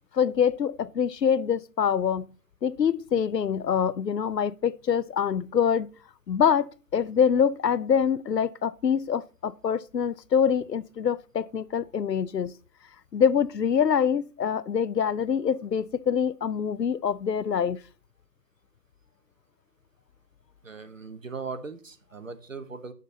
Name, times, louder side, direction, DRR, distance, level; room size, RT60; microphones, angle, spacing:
voice 1, 0.1-2.3 2.6-5.9 6.3-12.5 13.1-17.8, left 7 dB, 85° left, 0.6 m, -25 dB
voice 2, 20.6-22.9, right 4 dB, 55° right, 1.0 m, -39 dB
8.5 x 6.6 x 3.8 m
figure-of-eight pair, 160°, 48 cm